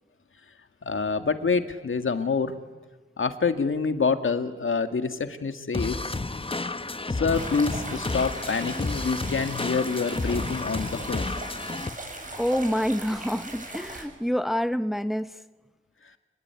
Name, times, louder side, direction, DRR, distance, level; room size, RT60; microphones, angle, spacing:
voice 1, 0.9-2.5 3.2-6.0 7.1-11.4, left 5 dB, 75° left, 8 dB, 2.0 m, -26 dB
sound 1, 5.7-11.9, left 3 dB, 25° left, 1.0 m, -31 dB
sound 2, 7.3-14.0, right 2 dB, 40° right, 7.9 m, -39 dB
voice 2, 12.4-15.4, equal, ahead, 11 dB, 1.0 m, -27 dB
29.0 x 21.0 x 9.7 m, 1.3 s
wide cardioid pair, 70°, 21 cm